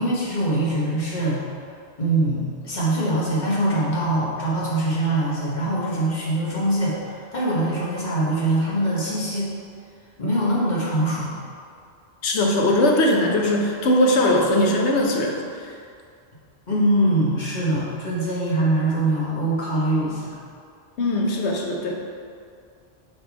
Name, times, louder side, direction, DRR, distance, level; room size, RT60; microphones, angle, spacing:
voice 1, 0.0-1.4 2.0-9.5 10.2-11.3 16.7-20.4, right 1 dB, 40° left, -6 dB, 1.4 m, -23 dB
voice 2, 12.2-15.8 21.0-22.0, left 1 dB, 75° left, 0 dB, 1.0 m, -20 dB
5.6 x 3.7 x 4.6 m, 2.3 s
omnidirectional pair, 1.2 m